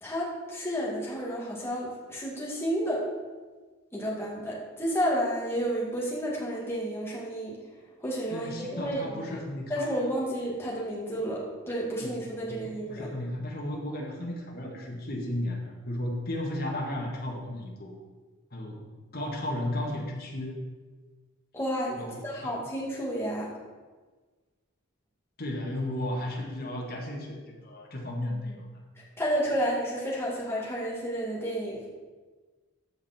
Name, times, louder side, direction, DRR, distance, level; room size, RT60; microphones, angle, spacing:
voice 1, 0.0-3.0 3.9-7.6 8.0-9.4 9.7-13.1 21.5-23.5 29.2-31.9, equal, 10° left, -5 dB, 2.3 m, -31 dB
voice 2, 8.3-10.0 12.0-12.1 12.5-12.6 12.9-17.9 18.5-18.8 19.1-20.6 22.0-22.5 25.4-28.8, left 1 dB, 45° left, -1 dB, 1.9 m, -34 dB
14.0 x 5.3 x 4.4 m, 1.3 s
head